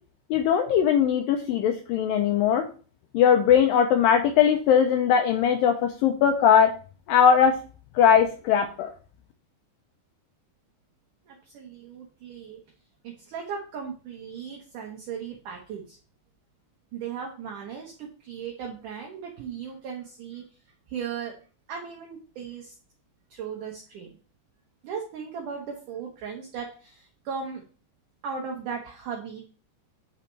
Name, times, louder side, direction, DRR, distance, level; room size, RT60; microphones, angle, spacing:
voice 1, 0.3-2.6 3.1-6.7 7.1-7.6 8.0-8.9, left 8 dB, 80° left, 5 dB, 2.1 m, -20 dB
voice 2, 11.3-12.6 13.0-16.0 16.9-20.4 20.9-21.3 21.7-22.7 23.3-24.1 24.8-27.6 28.2-29.4, right 6 dB, 65° right, 0 dB, 2.4 m, -37 dB
9.2 x 6.6 x 3.3 m, 0.39 s
omnidirectional pair, 4.7 m